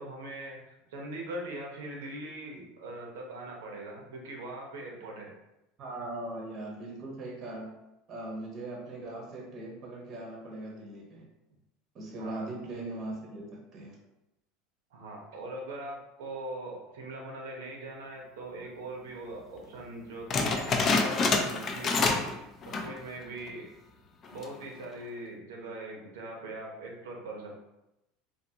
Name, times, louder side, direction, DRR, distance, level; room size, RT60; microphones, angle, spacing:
voice 1, 0.0-5.3 12.2-12.5 14.9-22.2 22.7-23.7 24.3-27.6, right 2 dB, 90° right, 0 dB, 0.7 m, -41 dB
voice 2, 5.8-7.8 8.1-11.3 11.9-13.9, right 2 dB, 40° right, -2 dB, 0.7 m, -40 dB
sound 1, 20.3-22.4 22.6-23.0 23.5-23.6 24.2-24.6, left 4 dB, 35° left, 0.4 m, -27 dB
2.5 x 2.5 x 2.7 m, 0.91 s
supercardioid pair, 115°, 0 cm